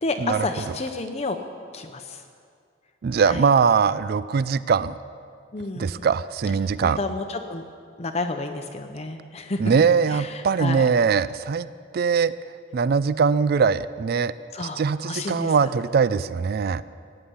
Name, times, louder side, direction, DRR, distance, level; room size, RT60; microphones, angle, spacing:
voice 1, 0.0-1.4 1.7-2.2 3.2-3.4 5.5-6.1 6.8-7.6 8.0-9.6 10.1-10.9 14.5-15.5, left 3 dB, 35° left, 5 dB, 0.7 m, -30 dB
voice 2, 3.0-4.9 5.8-7.0 9.6-11.7 11.9-12.3 12.7-14.3 14.6-16.8, right 6 dB, 55° right, 16 dB, 0.4 m, -21 dB
17.0 x 9.7 x 8.6 m, 2.3 s
head